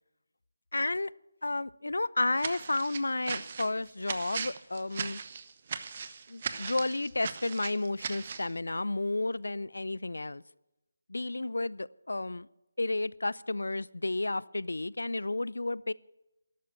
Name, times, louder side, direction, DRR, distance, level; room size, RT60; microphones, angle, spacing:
voice 1, 0.7-1.1 1.4-5.2 6.3-10.4 11.1-12.5 12.8-15.9, left 2 dB, 70° left, 23 dB, 0.4 m, -32 dB
sound 1, 2.4-8.5, right 6 dB, 35° right, 1.0 m, -38 dB
13.5 x 12.0 x 7.0 m, 0.96 s
figure-of-eight pair, 155°, 0 cm